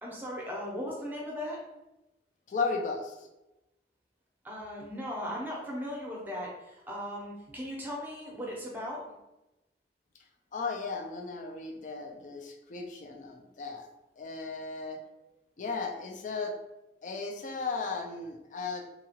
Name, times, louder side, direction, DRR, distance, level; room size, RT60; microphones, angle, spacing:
voice 1, 0.0-1.6 4.4-9.0, equal, 10° right, -3 dB, 0.7 m, -37 dB
voice 2, 2.5-3.1 10.5-13.9 14.2-15.0 15.6-16.5 17.0-18.8, left 4 dB, 45° left, 3 dB, 0.4 m, -35 dB
2.8 x 2.4 x 2.8 m, 0.97 s
head